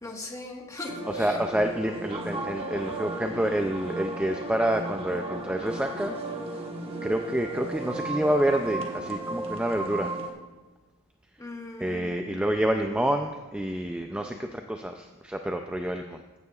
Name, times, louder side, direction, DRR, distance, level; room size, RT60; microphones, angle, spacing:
voice 1, 0.0-1.4 11.4-12.4, left 2 dB, 15° left, 0 dB, 1.4 m, -40 dB
sound 1, 0.9-10.3, right 2 dB, 25° right, 1.3 m, -34 dB
voice 2, 1.2-6.1 7.0-10.1 11.8-16.2, right 1 dB, 5° right, 5 dB, 0.3 m, -28 dB
15.0 x 9.5 x 2.4 m, 1.2 s
head